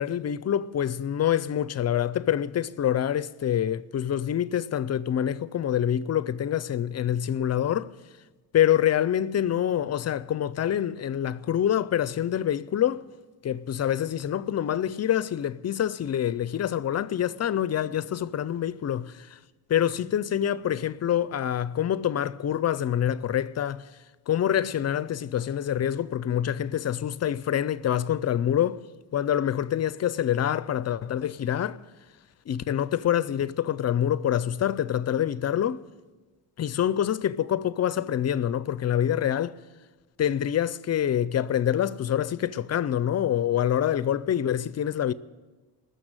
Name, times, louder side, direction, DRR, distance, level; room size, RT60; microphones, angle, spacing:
voice 1, 0.0-7.9 8.5-13.0 13.4-19.4 19.7-23.8 24.3-28.8 29.1-31.8 32.5-35.8 36.6-39.6 40.2-45.1, left 10 dB, 40° left, 0.4 m, -26 dB
20.0 x 6.9 x 8.9 m
cardioid pair, 130°, 40 cm